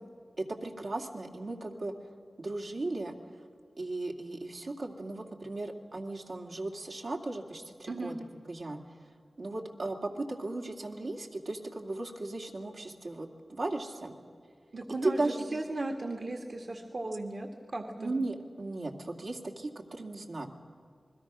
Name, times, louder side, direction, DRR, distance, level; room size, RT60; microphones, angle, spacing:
voice 1, 0.4-1.9 2.4-3.2 3.8-8.2 8.5-8.8 9.4-14.2 15.0-15.6 18.0-20.5, right 2 dB, 75° right, -1 dB, 2.3 m, -36 dB
voice 2, 14.7-18.1, right 2 dB, 60° right, 2 dB, 1.8 m, -36 dB
28.0 x 21.0 x 6.1 m, 2.3 s
cardioid pair, 55°, 0 cm